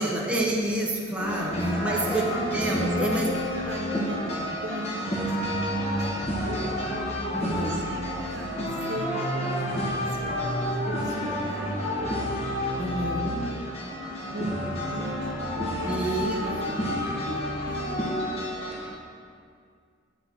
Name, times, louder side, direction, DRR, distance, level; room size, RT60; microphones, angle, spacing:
voice 1, 0.0-3.3 7.3-7.9 12.8-13.5 15.8-16.4, right 1 dB, 5° right, -3 dB, 0.7 m, -28 dB
sound 1, 1.2-18.9, equal, 30° left, 1.2 m, -29 dB
voice 2, 1.4-2.1 2.8-5.7 5.9-6.8 7.4-12.0 12.7-13.1 14.3-17.4 17.6-17.9, right 2 dB, 60° right, 1 dB, 0.9 m, -38 dB
7.8 x 4.1 x 5.9 m, 2.2 s
head